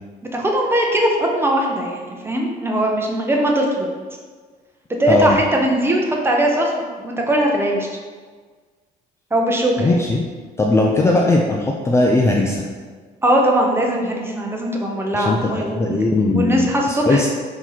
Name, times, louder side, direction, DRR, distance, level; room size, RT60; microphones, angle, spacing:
voice 1, 0.3-3.9 5.0-7.9 9.3-10.0 13.2-16.0 16.3-17.3, right 1 dB, 15° right, 0 dB, 0.7 m, -20 dB
voice 2, 5.1-5.4 9.8-10.2 10.6-12.6 15.1-17.3, left 2 dB, 15° left, -1 dB, 0.4 m, -18 dB
4.5 x 2.9 x 4.0 m, 1.5 s
cardioid pair, 110°, 17 cm